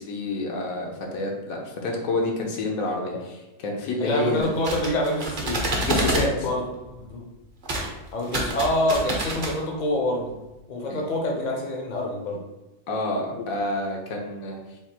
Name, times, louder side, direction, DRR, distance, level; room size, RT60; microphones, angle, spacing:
voice 1, 0.0-4.5 5.8-6.5 10.9-11.0 12.9-14.6, left 2 dB, 80° left, 0 dB, 1.2 m, -28 dB
voice 2, 4.0-5.7 6.4-6.7 7.0-7.3 8.1-10.3 10.7-12.4, left 1 dB, 45° left, 1 dB, 0.6 m, -26 dB
sound 1, 4.4-6.3 7.6-7.9 8.2-9.5, right 2 dB, 45° right, 0.8 m, -27 dB
3.5 x 2.4 x 4.2 m, 0.99 s
omnidirectional pair, 1.4 m